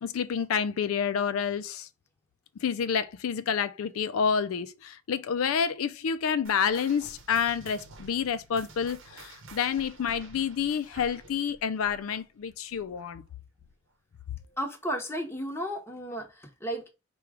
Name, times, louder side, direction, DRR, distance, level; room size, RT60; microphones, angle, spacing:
voice 1, 0.0-1.9 2.6-13.2, left 7 dB, 75° left, 0.4 m, -29 dB
sound 1, 6.4-13.3 13.6-13.9 14.5-14.6 15.4-15.5, right 3 dB, 65° right, 0.9 m, -50 dB
voice 2, 14.6-16.9, equal, 10° left, 0.9 m, -34 dB
4.6 x 2.3 x 4.8 m
head